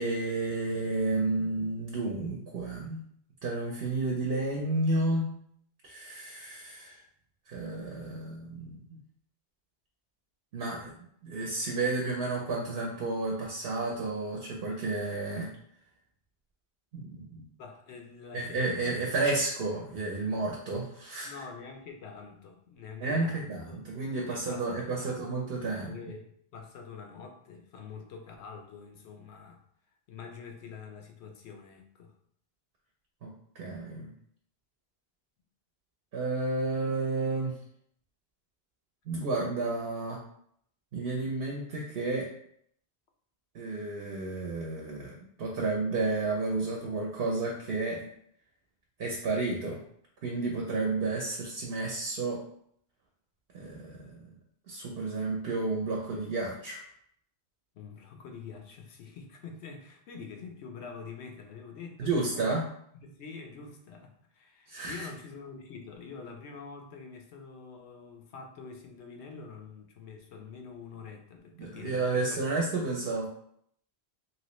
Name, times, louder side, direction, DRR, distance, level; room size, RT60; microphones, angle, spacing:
voice 1, 0.0-3.0 3.4-5.3 5.8-7.0 7.5-8.8 10.5-10.9 11.2-15.5 16.9-17.5 18.3-21.3 23.0-25.9 33.2-34.1 36.1-37.5 39.1-40.2 40.9-42.3 43.5-48.1 49.0-49.8 50.2-52.4 53.5-54.3 54.7-56.8 62.0-62.7 64.7-65.1 71.6-73.3, right 3 dB, 65° right, -1 dB, 0.8 m, -31 dB
voice 2, 17.6-18.9 21.2-23.8 24.2-25.4 25.8-26.2 26.5-29.6 30.1-32.1 57.7-62.5 62.9-72.4, left 5 dB, 90° left, 3 dB, 0.9 m, -46 dB
3.0 x 2.9 x 3.0 m, 0.68 s
omnidirectional pair, 1.1 m